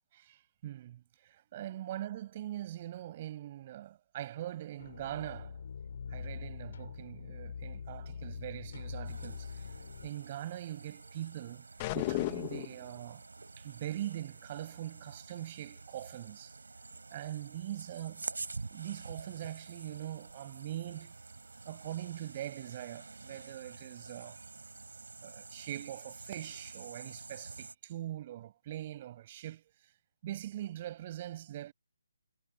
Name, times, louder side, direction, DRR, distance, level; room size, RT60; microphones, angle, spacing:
voice 1, 0.1-5.6 6.1-9.7 10.0-11.7 11.9-13.2 13.6-16.5 17.1-18.3 18.7-21.1 21.7-24.4 25.2-29.9 30.2-31.7, right 13 dB, 30° right, 7.5 m, -42 dB
sound 1, 4.8-10.1, left 6 dB, 55° left, 7.1 m, -43 dB
sound 2, 9.0-27.7, right 3 dB, 75° right, 4.0 m, -48 dB
sound 3, 11.8-12.8, left 20 dB, 25° left, 1.2 m, -33 dB
figure-of-eight pair, 150°, 0 cm